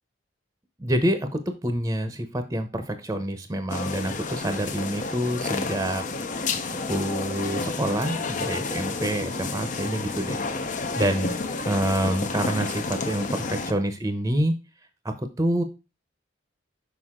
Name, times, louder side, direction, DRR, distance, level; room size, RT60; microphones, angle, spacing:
voice 1, 0.8-6.0 6.9-10.4 10.7-11.3 11.6-14.5 15.0-15.6, right 1 dB, 15° right, 9 dB, 0.8 m, -27 dB
sound 1, 3.7-13.7, left 3 dB, 40° left, 0.7 m, -30 dB
6.5 x 5.1 x 3.7 m, 0.29 s
head